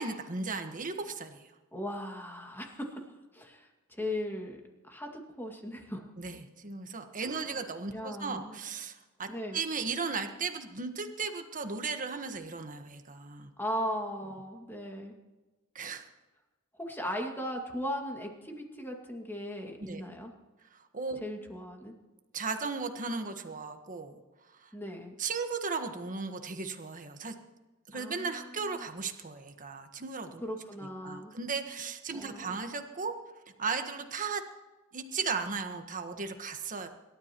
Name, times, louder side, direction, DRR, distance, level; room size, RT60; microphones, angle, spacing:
voice 1, 0.0-1.5 6.2-13.5 15.7-16.0 19.8-20.0 20.7-21.2 22.3-24.2 24.6-24.7 25.2-27.3 27.9-30.4 31.0-33.1 33.6-34.4 34.9-36.9, right 4 dB, 40° right, 6 dB, 1.4 m, -36 dB
voice 2, 1.7-3.0 3.3-4.6 4.8-6.1 7.2-7.5 7.9-8.6 9.3-9.6 13.6-15.2 16.8-20.3 21.2-21.9 24.7-25.2 27.9-28.4 28.7-28.9 30.4-31.3 32.1-32.6, equal, 10° left, 1 dB, 2.2 m, -38 dB
27.5 x 13.0 x 3.0 m, 1.2 s
head